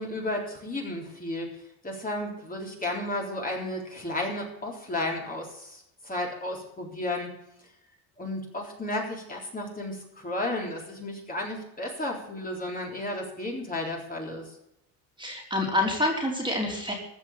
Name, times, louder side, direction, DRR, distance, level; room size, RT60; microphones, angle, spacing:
voice 1, 0.0-1.5 1.8-7.3 8.2-14.5, left 1 dB, 20° left, -1 dB, 3.8 m, -33 dB
voice 2, 15.2-16.9, left 1 dB, 10° right, 0 dB, 3.6 m, -27 dB
15.0 x 6.3 x 9.6 m, 0.82 s
cardioid pair, 120°, 46 cm